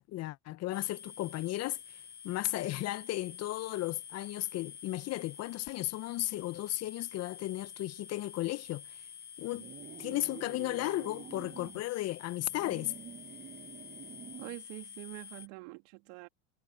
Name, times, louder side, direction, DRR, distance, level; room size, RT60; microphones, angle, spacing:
voice 1, 0.0-2.0 2.2-8.8 9.4-9.7 10.0-12.9, left 16 dB, 40° left, 0.7 m, -35 dB
sound 1, 0.7-15.5, left 7 dB, 25° left, 1.7 m, -49 dB
sound 2, 9.5-11.8 12.4-14.6, right 9 dB, 25° right, 0.9 m, -48 dB
voice 2, 14.4-16.3, right 25 dB, 65° right, 2.6 m, -45 dB
supercardioid pair, 105°, 41 cm